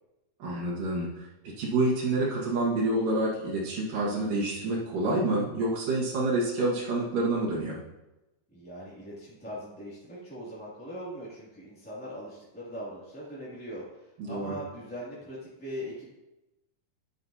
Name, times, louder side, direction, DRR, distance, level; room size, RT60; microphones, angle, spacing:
voice 1, 0.4-1.3 1.6-7.8 14.2-14.6, right 2 dB, 80° right, -6 dB, 3.4 m, -28 dB
voice 2, 8.5-16.1, equal, 5° left, -8 dB, 1.9 m, -41 dB
10.5 x 10.5 x 2.8 m, 0.99 s
omnidirectional pair, 3.8 m